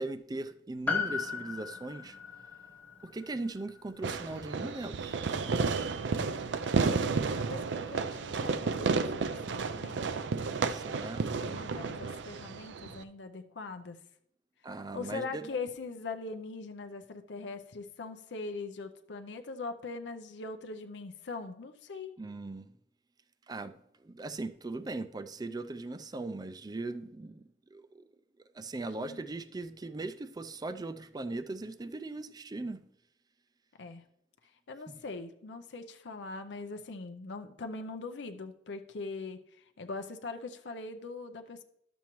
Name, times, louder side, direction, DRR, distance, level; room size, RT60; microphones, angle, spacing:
voice 1, 0.0-2.2 3.0-5.2 10.7-11.3 14.6-15.5 22.2-22.7 23.5-27.4 27.7-28.0 28.5-32.8 34.9-35.0, right 2 dB, 20° right, 0.4 m, -39 dB
Piano, 0.9-5.5 5.7-5.8, left 5 dB, 10° left, 1.0 m, -38 dB
Fireworks, 4.0-13.0, right 4 dB, 85° right, 0.4 m, -32 dB
voice 2, 6.7-9.1 9.5-10.2 11.2-14.0 14.9-22.2 29.0-29.2 33.8-34.0 34.7-41.6, left 3 dB, 80° left, 0.6 m, -41 dB
11.5 x 7.0 x 3.0 m
head